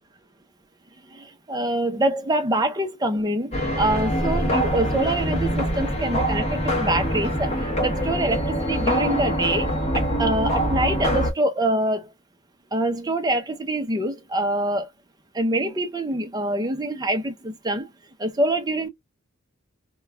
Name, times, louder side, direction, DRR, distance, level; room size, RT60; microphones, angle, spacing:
voice 1, 1.0-12.1 12.7-14.9 15.3-17.9 18.2-18.9, right 1 dB, 20° right, 0.5 m, -25 dB
sound 1, 3.5-11.3, equal, 30° left, 0.8 m, -24 dB
2.3 x 2.2 x 3.1 m
head